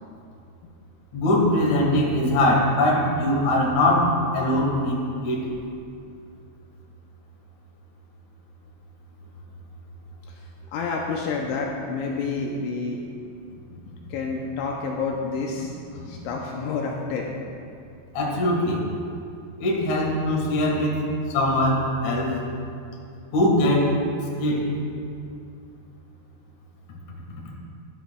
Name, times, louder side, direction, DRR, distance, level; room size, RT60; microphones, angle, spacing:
voice 1, 1.1-5.5 18.1-18.9 19.6-21.0 21.3-22.4 23.3-23.9 24.4-24.7, left 1 dB, 55° left, -2 dB, 2.3 m, -22 dB
voice 2, 10.7-13.0 14.1-15.7 16.1-17.5, left 4 dB, 80° left, 0 dB, 2.9 m, -29 dB
13.5 x 11.5 x 2.3 m, 2.5 s
omnidirectional pair, 5.5 m